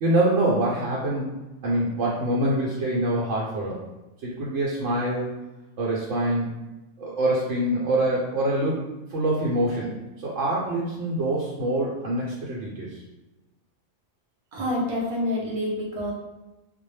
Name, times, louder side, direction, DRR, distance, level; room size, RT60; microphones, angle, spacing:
voice 1, 0.0-1.3 1.6-3.8 4.2-5.4 5.8-6.5 7.0-8.8 9.1-13.0, right 1 dB, 70° right, -6 dB, 0.8 m, -25 dB
voice 2, 14.5-16.1, left 1 dB, 45° right, -4 dB, 0.4 m, -27 dB
2.2 x 2.0 x 3.1 m, 1.0 s
omnidirectional pair, 1.3 m